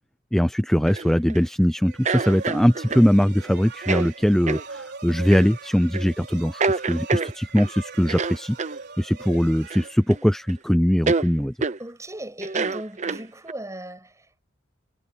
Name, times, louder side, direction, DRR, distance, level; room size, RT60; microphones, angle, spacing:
voice 1, 0.3-8.6 9.0-11.5, equal, ahead, 0.6 m, -21 dB
sound 1, 0.9-1.4 2.1-3.1 3.8-4.1 4.5-4.6 5.3-5.5 5.9-6.1 6.6-7.7 8.1-8.8 9.7-10.2 10.5-10.6 11.1-11.3 11.6-11.8 12.4-13.5, right 4 dB, 35° right, 0.8 m, -27 dB
sound 2, 1.8-10.5, right 4 dB, 55° right, 5.3 m, -41 dB
voice 2, 11.8-14.4, right 1 dB, 15° right, 6.8 m, -37 dB
head